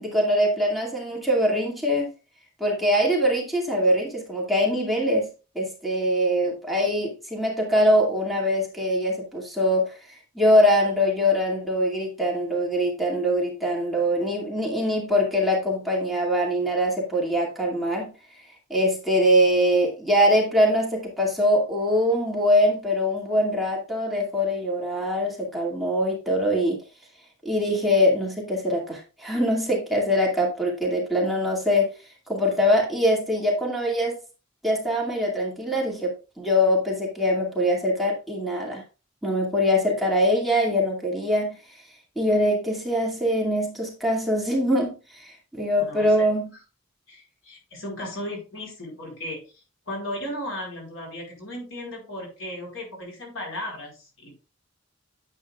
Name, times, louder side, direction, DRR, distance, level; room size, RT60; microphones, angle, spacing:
voice 1, 0.0-2.1 2.6-5.3 5.5-9.9 10.4-18.1 18.7-26.8 27.4-31.9 32.3-34.2 34.6-38.8 39.2-41.6 42.2-46.5, equal, ahead, -3 dB, 2.3 m, -23 dB
voice 2, 45.8-46.3 47.1-54.4, left 1 dB, 75° left, 0 dB, 4.3 m, -36 dB
9.5 x 8.0 x 2.4 m, 0.31 s
head